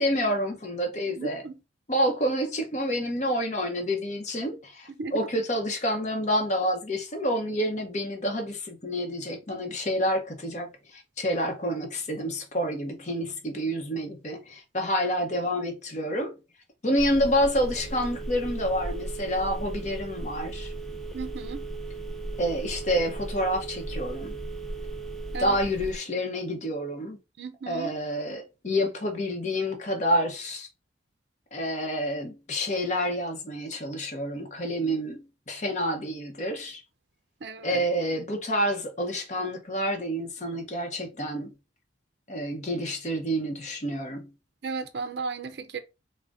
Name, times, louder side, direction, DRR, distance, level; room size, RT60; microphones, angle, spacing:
voice 1, 0.0-1.4 1.9-16.4 16.8-20.7 22.4-24.4 25.4-27.2 27.7-30.7 31.5-36.8 37.6-41.5 42.3-44.3, equal, 40° left, 0.8 m, -28 dB
voice 2, 1.2-1.5 5.0-5.2 21.1-21.6 25.3-25.6 27.4-27.9 37.4-37.9 44.6-45.8, right 4 dB, 60° right, 0.5 m, -35 dB
Telephone, 17.0-26.0, right 2 dB, ahead, 0.4 m, -36 dB
3.8 x 2.1 x 3.5 m
head